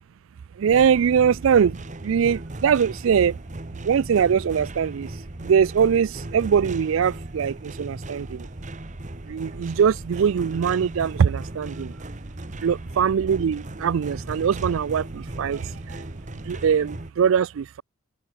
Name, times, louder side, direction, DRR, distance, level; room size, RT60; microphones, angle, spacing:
voice 1, 0.6-1.8 2.0-3.3 3.8-5.1 5.4-8.5 9.3-11.9 12.6-16.0 16.5-17.8, right 7 dB, 65° right, 0.3 m, -22 dB
sound 1, 0.7-17.1, right 1 dB, 35° right, 1.3 m, -37 dB
open air
head